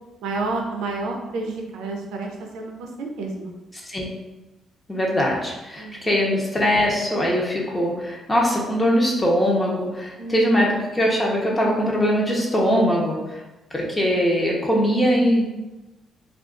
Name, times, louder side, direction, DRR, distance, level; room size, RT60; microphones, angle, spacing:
voice 1, 0.2-3.5 5.8-6.1 10.2-10.4, right 3 dB, 90° right, 1 dB, 0.5 m, -30 dB
voice 2, 4.9-13.4 13.7-15.5, equal, 20° left, -2 dB, 0.7 m, -21 dB
2.5 x 2.4 x 3.7 m, 1.1 s
cardioid pair, 90°, 0 cm